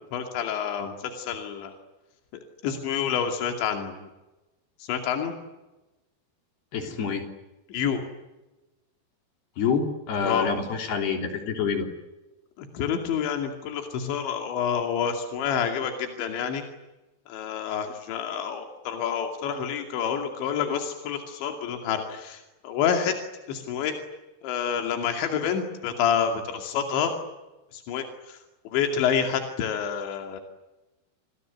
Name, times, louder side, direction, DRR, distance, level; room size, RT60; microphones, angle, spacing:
voice 1, 0.1-1.7 2.6-4.0 4.8-5.3 7.7-8.0 10.2-10.5 12.6-16.6 17.3-23.2 23.5-24.0 24.4-27.1 27.7-28.4 28.6-30.4, left 7 dB, 85° left, 5 dB, 4.8 m, -28 dB
voice 2, 6.7-7.3 9.6-11.9, left 6 dB, 65° left, 5 dB, 5.3 m, -27 dB
29.0 x 21.0 x 9.5 m, 1.0 s
omnidirectional pair, 5.1 m